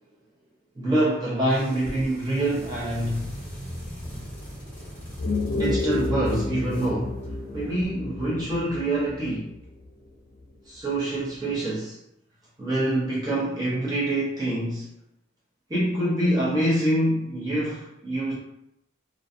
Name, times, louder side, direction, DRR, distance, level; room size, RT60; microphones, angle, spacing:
voice 1, 0.7-3.3 5.5-7.2 7.5-9.5 10.7-12.0 12.6-14.9 15.7-18.3, right 1 dB, 20° right, -8 dB, 0.6 m, -25 dB
sound 1, 1.4-7.8, equal, 10° left, 1.0 m, -41 dB
sound 2, 5.0-9.9, left 2 dB, 50° left, 0.4 m, -30 dB
2.4 x 2.3 x 2.6 m, 0.80 s
head